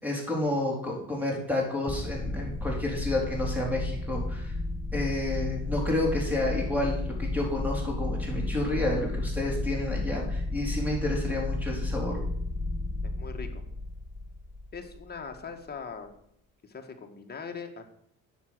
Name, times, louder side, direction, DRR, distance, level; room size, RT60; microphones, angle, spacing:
voice 1, 0.0-4.5 4.9-12.2, left 1 dB, 5° right, -1 dB, 3.8 m, -30 dB
sound 1, 1.9-15.2, left 2 dB, 10° left, 1.2 m, -33 dB
voice 2, 13.0-13.6 14.7-16.1 16.6-17.8, left 5 dB, 30° left, 4 dB, 1.7 m, -41 dB
9.3 x 6.4 x 6.1 m, 0.72 s
cardioid pair, 100°, 34 cm